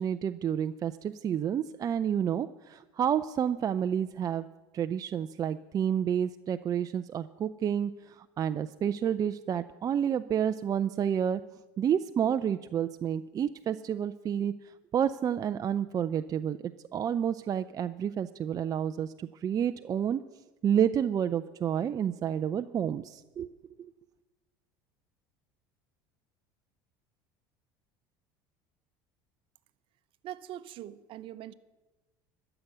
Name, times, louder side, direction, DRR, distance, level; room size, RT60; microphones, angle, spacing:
voice 1, 0.0-4.5 4.7-11.4 11.8-14.5 14.9-16.6 16.9-20.2 20.6-23.5, right 9 dB, 35° right, 10 dB, 0.4 m, -29 dB
voice 2, 30.2-31.5, right 12 dB, 55° right, 14 dB, 0.8 m, -42 dB
13.0 x 6.8 x 9.3 m, 1.1 s
hypercardioid pair, 90°, 11 cm